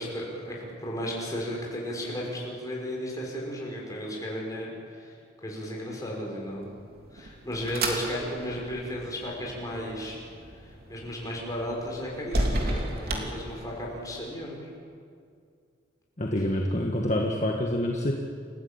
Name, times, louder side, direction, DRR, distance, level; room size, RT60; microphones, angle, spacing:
voice 1, 0.0-5.2 5.4-6.6 7.1-10.2 10.6-14.7, equal, 20° left, -3 dB, 6.4 m, -34 dB
sound 1, 6.7-14.1, right 1 dB, 50° right, 3.3 m, -34 dB
voice 2, 16.2-18.1, left 1 dB, 40° left, 0 dB, 1.7 m, -27 dB
29.0 x 15.5 x 8.7 m, 2.3 s
head